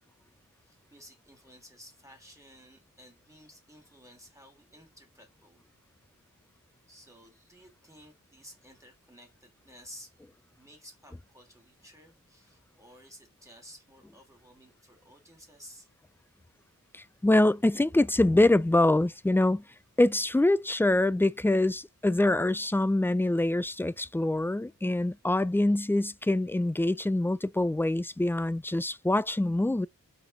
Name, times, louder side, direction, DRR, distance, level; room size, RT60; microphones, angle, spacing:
voice 1, 0.6-5.6 6.9-10.2 10.6-15.9, equal, 10° right, 3.1 m, -54 dB
voice 2, 16.9-19.6 20.0-29.9, left 1 dB, 5° left, 0.4 m, -25 dB
5.3 x 4.2 x 5.8 m
wide cardioid pair, 55°, 33 cm